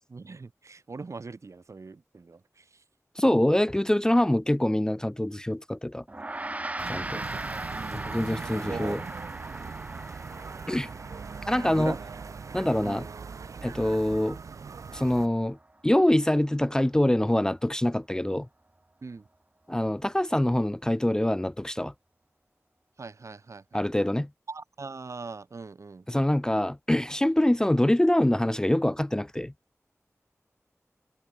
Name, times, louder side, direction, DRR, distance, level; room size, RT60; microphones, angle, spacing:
voice 1, 0.1-2.8 7.1-8.2 8.5-9.0 9.4-9.6 11.7-12.0 12.6-13.0 19.0-19.3 23.0-24.1 24.5-26.1, right 4 dB, 70° right, 1.5 m, -41 dB
voice 2, 3.2-6.0 6.9-7.2 7.9-9.0 10.7-10.9 11.5-11.9 12.5-13.1 13.6-14.4 14.9-15.6 15.8-18.5 19.7-21.9 23.7-24.3 26.1-29.5, left 1 dB, 10° left, 0.4 m, -25 dB
Gong, 6.1-15.6, right 2 dB, 25° right, 0.7 m, -40 dB
sound 1, 6.8-15.3, right 5 dB, 85° right, 0.4 m, -40 dB
wide cardioid pair, 75°, 5 cm